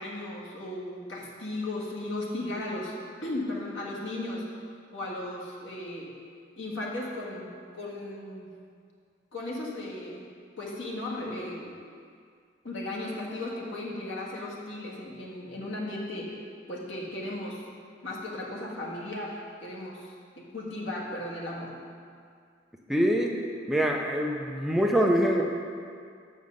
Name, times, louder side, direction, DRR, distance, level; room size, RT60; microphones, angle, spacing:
voice 1, 0.0-2.9 3.2-4.4 4.9-6.1 6.6-8.5 9.3-10.2 10.6-11.7 12.6-16.3 16.7-17.6 18.0-21.7, left 1 dB, 85° left, -4 dB, 1.6 m, -36 dB
voice 2, 22.9-23.4 23.7-25.4, equal, ahead, 0 dB, 0.5 m, -24 dB
7.0 x 5.4 x 6.4 m, 2.2 s
head